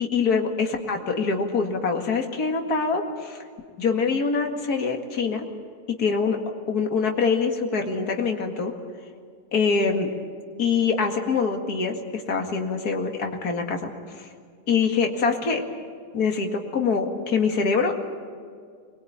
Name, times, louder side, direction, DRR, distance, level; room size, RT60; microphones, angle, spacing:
voice 1, 0.0-3.4 3.8-5.5 6.0-6.4 6.7-8.7 9.5-10.1 10.6-14.3 14.7-15.6 16.1-18.0, left 5 dB, 60° left, 3 dB, 2.6 m, -24 dB
23.0 x 21.5 x 8.8 m, 2.1 s
omnidirectional pair, 1.9 m